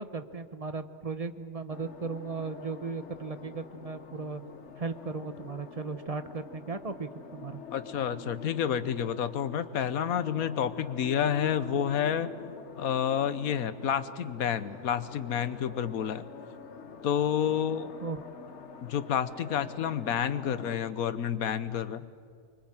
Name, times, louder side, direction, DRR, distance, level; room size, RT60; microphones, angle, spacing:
voice 1, 0.0-4.4 4.8-7.6 18.0-18.3, right 4 dB, 30° right, 10 dB, 1.0 m, -36 dB
sound 1, 1.7-20.8, left 6 dB, 55° left, 1.4 m, -46 dB
voice 2, 7.7-12.3 12.7-16.2 17.0-17.9 18.8-22.0, left 8 dB, 85° left, 14 dB, 1.4 m, -29 dB
25.0 x 23.5 x 8.9 m, 2.3 s
omnidirectional pair, 1.5 m